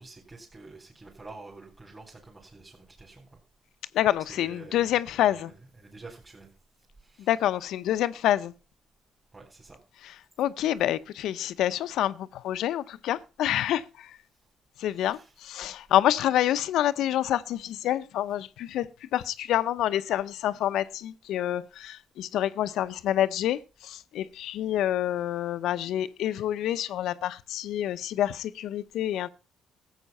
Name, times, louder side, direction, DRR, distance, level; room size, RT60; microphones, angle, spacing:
voice 1, 0.0-3.4 4.2-6.5 7.0-7.5 9.3-9.8 14.8-15.4, right 3 dB, 20° right, 3.6 m, -49 dB
voice 2, 3.9-5.5 7.2-8.5 10.4-14.2 14.8-29.3, left 12 dB, 85° left, 0.6 m, -27 dB
14.0 x 8.0 x 5.4 m
cardioid pair, 90°, 0 cm